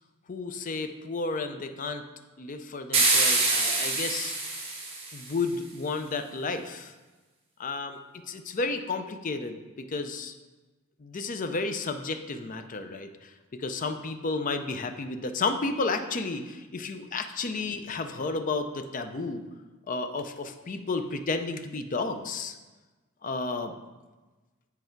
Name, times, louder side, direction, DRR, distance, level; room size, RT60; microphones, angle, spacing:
voice 1, 0.3-2.0 2.4-4.4 5.1-6.9 7.6-8.0 8.3-10.3 11.0-19.4 19.9-22.6 23.2-23.7, left 3 dB, 40° left, 8 dB, 0.5 m, -32 dB
sound 1, 2.9-5.3, right 3 dB, 30° right, 1.2 m, -25 dB
7.8 x 4.7 x 4.5 m, 1.2 s
head